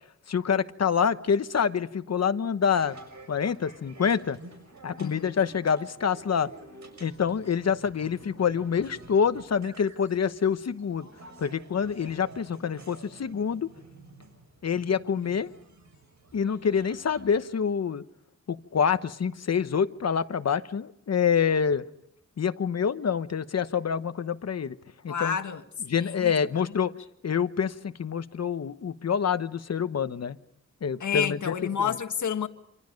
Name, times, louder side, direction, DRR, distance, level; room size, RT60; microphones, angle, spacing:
voice 1, 0.3-2.9 3.3-4.4 4.8-6.5 7.0-11.1 11.4-13.7 14.6-15.5 16.3-18.0 18.5-21.8 22.4-24.7 25.0-25.4 25.9-26.9 27.2-30.4 30.8-31.9, left 7 dB, 60° left, 1.1 m, -26 dB
sound 1, 2.7-17.5, right 2 dB, 75° right, 6.6 m, -50 dB
voice 2, 5.0-5.3 25.1-25.6 25.9-26.4 31.0-32.5, left 7 dB, 80° left, 1.7 m, -29 dB
28.0 x 27.0 x 5.3 m
wide cardioid pair, 150°, 29 cm